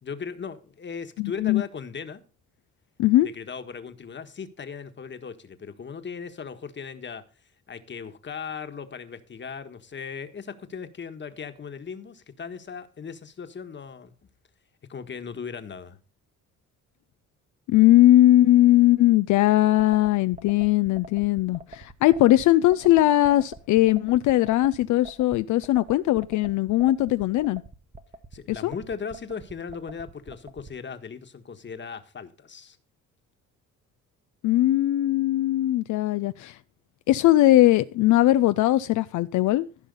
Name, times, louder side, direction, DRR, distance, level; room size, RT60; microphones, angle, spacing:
voice 1, 0.0-2.2 3.2-7.2 7.7-14.1 14.9-16.0 28.3-32.8, left 6 dB, 40° left, 1.4 m, -37 dB
voice 2, 1.2-1.6 3.0-3.3 17.7-27.6 28.5-28.7 34.4-36.6 37.1-39.7, left 15 dB, 80° left, 0.5 m, -20 dB
sound 1, 19.8-30.7, right 2 dB, 25° right, 1.2 m, -44 dB
15.0 x 5.6 x 5.3 m
cardioid pair, 90°, 30 cm